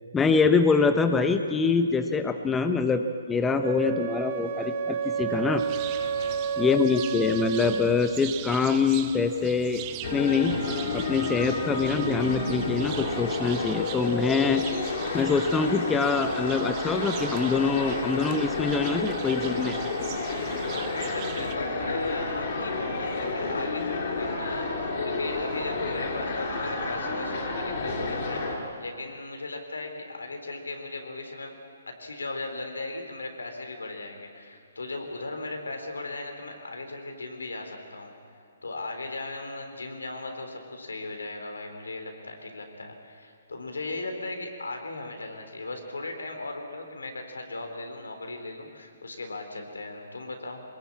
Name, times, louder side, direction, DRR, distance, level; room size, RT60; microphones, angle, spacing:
voice 1, 0.1-3.0 3.3-5.6 6.6-9.8 10.1-10.6 10.9-14.6 15.1-19.8, left 4 dB, 10° left, 8 dB, 0.9 m, -24 dB
voice 2, 2.3-2.6 6.0-6.4 20.7-31.5 31.9-38.1 38.6-50.6, left 2 dB, 80° left, 4 dB, 3.9 m, -37 dB
Wind instrument woodwind instrument, 3.6-8.1, right 6 dB, 50° right, 1.3 m, -30 dB
sound 1, 5.6-21.6, right 13 dB, 30° right, 1.1 m, -42 dB
sound 2, 10.0-28.6, left 3 dB, 50° left, 5.3 m, -31 dB
23.0 x 21.0 x 8.7 m, 2.3 s
figure-of-eight pair, 135°, 0 cm